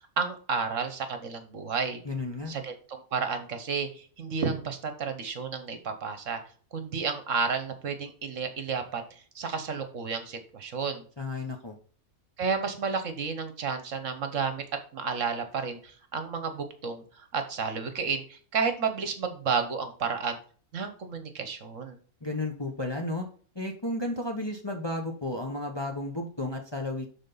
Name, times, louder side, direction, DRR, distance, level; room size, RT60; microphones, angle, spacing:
voice 1, 0.2-2.0 2.5-6.4 6.7-11.1 12.4-14.6 14.9-20.4 20.7-22.0, right 5 dB, 60° right, 8 dB, 1.3 m, -31 dB
voice 2, 2.0-2.5 11.2-11.8 22.2-23.3 23.5-27.1, left 2 dB, 20° left, 2 dB, 0.9 m, -33 dB
12.5 x 4.1 x 4.0 m, 0.43 s
omnidirectional pair, 1.5 m